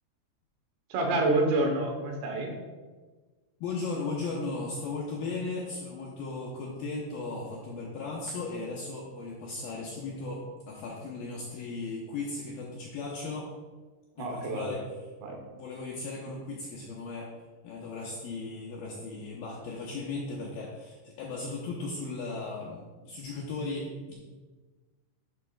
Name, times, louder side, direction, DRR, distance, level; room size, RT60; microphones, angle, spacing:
voice 1, 0.9-2.5 14.2-14.8 15.2-15.4, right 2 dB, 75° right, 2 dB, 3.1 m, -28 dB
voice 2, 3.6-10.4 10.7-13.5 14.2-14.8 15.5-17.3 17.6-24.2, left 3 dB, 75° left, -4 dB, 2.2 m, -36 dB
12.0 x 6.2 x 2.3 m, 1.3 s
omnidirectional pair, 5.2 m